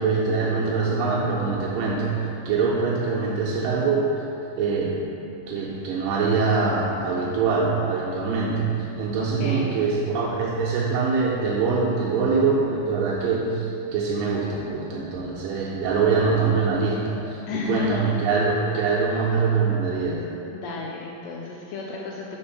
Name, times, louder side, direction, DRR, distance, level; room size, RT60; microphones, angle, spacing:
voice 1, 0.0-4.2 4.5-5.0 5.5-8.7 9.0-20.3, right 4 dB, 90° right, -4 dB, 1.9 m, -24 dB
voice 2, 9.2-9.8 17.5-18.1 20.5-22.2, left 4 dB, 85° left, -2 dB, 2.0 m, -32 dB
5.2 x 4.5 x 5.5 m, 2.7 s
omnidirectional pair, 4.6 m